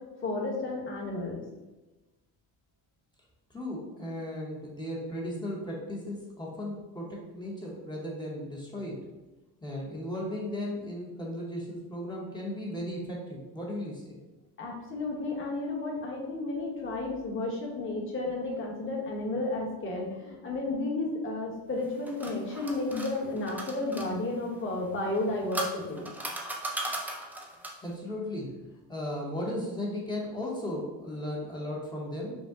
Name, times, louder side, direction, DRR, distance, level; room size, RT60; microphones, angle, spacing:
voice 1, 0.2-1.4 14.6-26.1, left 2 dB, 35° left, -2 dB, 1.1 m, -32 dB
voice 2, 3.5-9.0 9.6-14.1 27.8-28.5 28.9-32.3, left 1 dB, 10° left, -4 dB, 0.8 m, -36 dB
sound 1, 21.8-24.1 25.1-27.9, right 1 dB, 5° right, 0.3 m, -37 dB
5.2 x 2.1 x 3.6 m, 1.1 s
cardioid pair, 140°, 37 cm